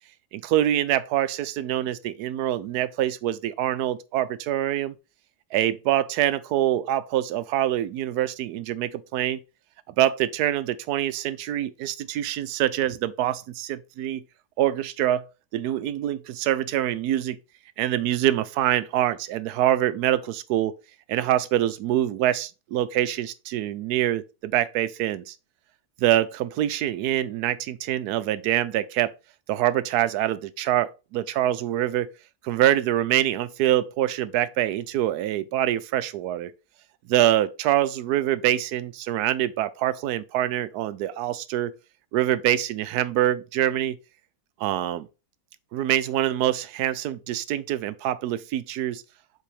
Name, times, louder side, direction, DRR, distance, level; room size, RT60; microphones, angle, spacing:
voice 1, 0.3-5.0 5.5-9.4 9.9-14.2 14.6-15.3 15.5-17.4 17.8-20.8 21.1-25.3 26.0-29.1 29.5-32.1 32.4-36.5 37.1-41.7 42.1-44.0 44.6-45.1 45.7-49.0, right 12 dB, 75° right, 1.1 m, -25 dB
7.5 x 3.9 x 3.3 m
omnidirectional pair, 1.8 m